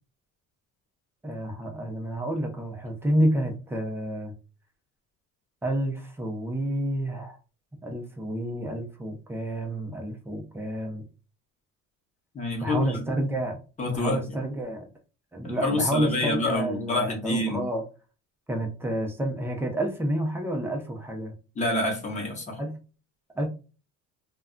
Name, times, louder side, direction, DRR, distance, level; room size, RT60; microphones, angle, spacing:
voice 1, 1.2-4.3 5.6-7.4 7.8-11.0 12.6-13.6 13.9-14.9 15.3-17.8 18.5-21.3 22.6-22.8 23.4-23.5, right 1 dB, 5° right, 3 dB, 0.4 m, -29 dB
voice 2, 12.3-13.0 13.8-14.2 15.4-17.7 21.6-22.6, left 2 dB, 20° left, 1 dB, 0.7 m, -27 dB
2.3 x 2.1 x 3.6 m, 0.33 s
cardioid pair, 175°, 32 cm